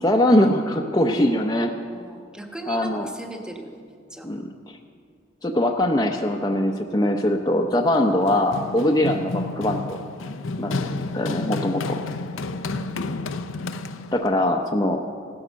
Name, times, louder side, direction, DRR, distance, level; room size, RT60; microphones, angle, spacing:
voice 1, 0.0-1.7 2.7-3.1 4.2-4.5 5.4-10.0 10.6-10.7 11.1-12.0 14.1-15.0, left 1 dB, 20° left, 1 dB, 0.7 m, -21 dB
voice 2, 1.9-4.3 12.7-12.9, right 1 dB, 5° right, 3 dB, 1.2 m, -38 dB
Run, 7.9-14.3, left 3 dB, 85° left, 0.7 m, -31 dB
16.0 x 12.0 x 6.3 m, 2.1 s
head